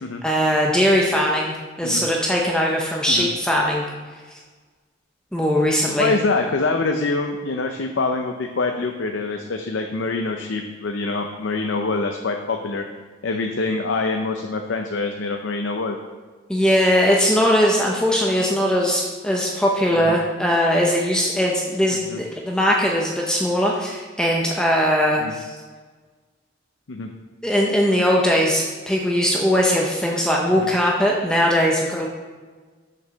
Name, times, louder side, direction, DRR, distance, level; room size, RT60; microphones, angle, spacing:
voice 1, 0.2-3.8 5.3-6.1 16.5-25.6 27.4-32.1, equal, 5° left, -2 dB, 0.7 m, -20 dB
voice 2, 6.0-12.8 13.2-16.0 20.0-20.1 21.9-22.2 25.2-25.3 26.9-27.1 30.6-30.7, left 3 dB, 85° left, 4 dB, 0.6 m, -25 dB
6.6 x 5.4 x 6.2 m, 1.4 s
head